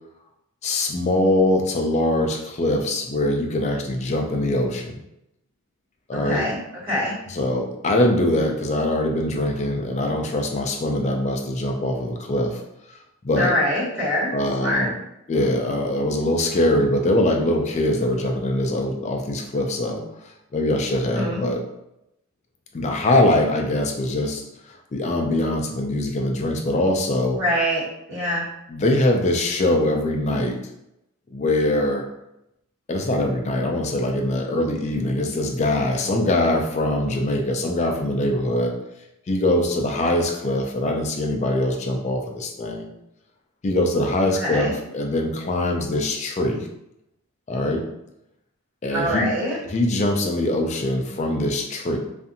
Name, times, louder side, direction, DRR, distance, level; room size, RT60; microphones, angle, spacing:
voice 1, 0.6-5.0 6.1-6.5 7.3-12.6 12.9-13.0 13.2-13.5 14.3-14.9 15.3-21.6 22.7-27.4 28.7-30.6 31.3-32.0 32.9-38.7 39.3-42.9 43.6-46.7 47.5-47.9 48.8-49.3 49.7-52.0, left 1 dB, 30° left, 2 dB, 0.3 m, -23 dB
voice 2, 6.2-6.6 6.8-7.2 13.4-14.3 14.6-14.9 21.1-21.4 27.4-28.4 44.4-44.7 48.9-49.6, equal, 55° right, -10 dB, 1.5 m, -24 dB
2.5 x 2.4 x 2.6 m, 0.84 s
head